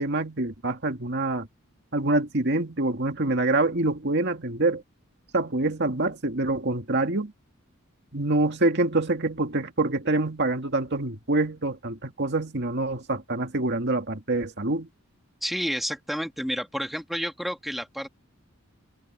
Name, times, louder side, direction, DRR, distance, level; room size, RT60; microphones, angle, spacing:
voice 1, 0.0-1.5 1.9-4.8 5.3-7.3 8.1-14.9, right 2 dB, 55° right, 2.1 m, -26 dB
voice 2, 15.4-18.1, equal, ahead, 1.7 m, -30 dB
head